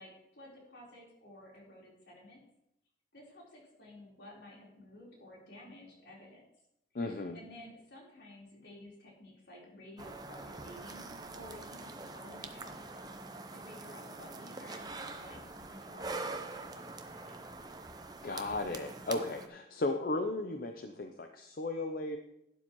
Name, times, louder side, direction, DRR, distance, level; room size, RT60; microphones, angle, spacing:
voice 1, 0.0-2.4 3.1-6.4 7.3-13.1 13.5-16.8 17.2-17.4, left 1 dB, 75° left, -4 dB, 4.0 m, -53 dB
voice 2, 6.9-7.4 18.2-22.2, left 2 dB, 55° left, 6 dB, 0.6 m, -35 dB
sound 1, 10.0-19.5, right 3 dB, 25° right, 0.7 m, -44 dB
11.5 x 9.9 x 3.1 m, 0.79 s
head